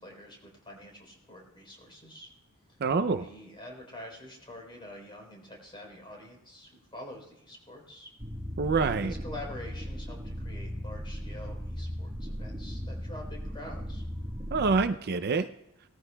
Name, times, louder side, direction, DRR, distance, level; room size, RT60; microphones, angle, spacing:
voice 1, 0.0-2.3 2.7-2.8 3.2-8.1 8.7-14.0, left 1 dB, 25° left, 0 dB, 3.8 m, -46 dB
voice 2, 2.8-3.3 8.6-9.1 14.5-15.5, right 4 dB, 50° right, 10 dB, 0.5 m, -26 dB
purr clip, 8.2-14.8, equal, 15° right, 1.4 m, -37 dB
19.5 x 14.0 x 2.3 m, 0.85 s
head